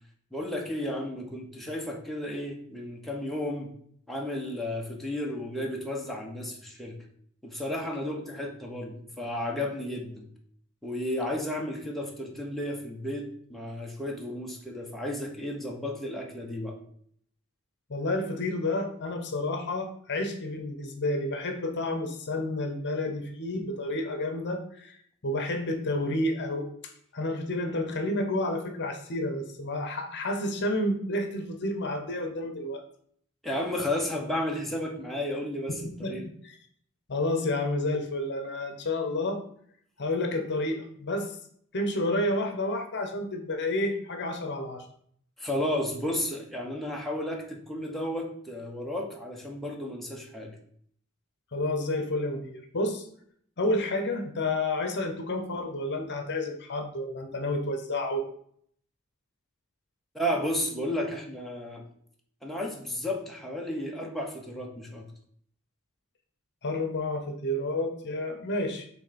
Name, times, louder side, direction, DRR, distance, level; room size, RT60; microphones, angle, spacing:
voice 1, 0.3-3.7 4.1-7.0 7.4-10.3 10.8-16.8 33.4-36.2 45.4-50.6 60.1-61.8 62.4-65.1, left 1 dB, ahead, -1 dB, 1.0 m, -33 dB
voice 2, 17.9-25.0 25.2-32.8 35.7-36.5 37.1-39.4 40.0-41.4 41.7-44.9 51.5-53.1 53.6-58.2 66.6-68.9, left 1 dB, 55° left, 6 dB, 0.9 m, -30 dB
6.3 x 3.3 x 5.1 m, 0.63 s
head